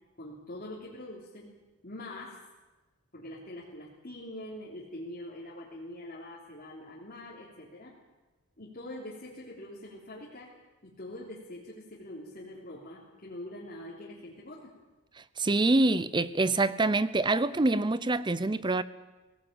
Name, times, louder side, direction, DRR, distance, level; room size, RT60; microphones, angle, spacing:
voice 1, 0.2-1.5 1.8-2.4 3.1-8.0 8.6-10.5 10.8-14.7, left 1 dB, 40° left, -6 dB, 3.4 m, -44 dB
voice 2, 15.4-18.8, right 2 dB, 20° right, 16 dB, 0.6 m, -25 dB
18.0 x 17.5 x 8.8 m, 1.1 s
head